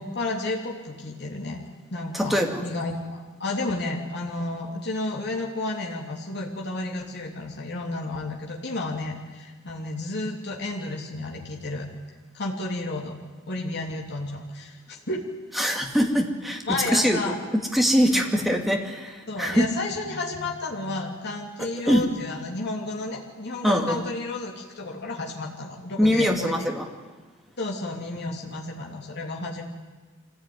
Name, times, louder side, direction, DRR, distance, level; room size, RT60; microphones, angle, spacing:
voice 1, 0.0-1.6 1.9-11.9 12.3-13.1 13.5-15.2 16.7-17.4 18.1-18.2 19.3-26.7 27.6-29.6, left 2 dB, 55° left, -1 dB, 3.1 m, -32 dB
voice 2, 2.1-2.7 15.6-17.2 17.5-19.7 21.8-22.0 23.6-24.1 26.0-26.9, equal, ahead, 2 dB, 2.4 m, -23 dB
25.0 x 16.0 x 9.6 m, 1.4 s
head